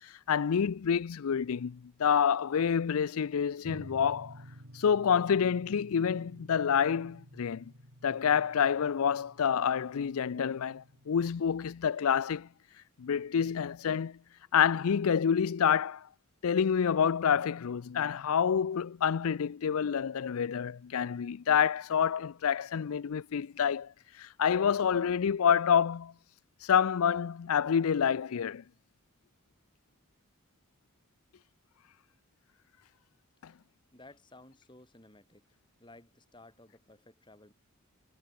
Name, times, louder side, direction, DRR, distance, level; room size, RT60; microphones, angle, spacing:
voice 1, 0.3-4.4 4.7-7.7 8.0-12.5 13.0-14.2 14.5-16.0 16.4-23.9 24.2-26.1 26.6-28.6 33.4-33.5, left 7 dB, 75° left, 0.4 m, -28 dB
sound 1, 3.6-11.3, equal, 75° right, 7.5 m, -52 dB
voice 2, 33.9-35.4 35.8-37.5, left 2 dB, 20° left, 4.2 m, -55 dB
head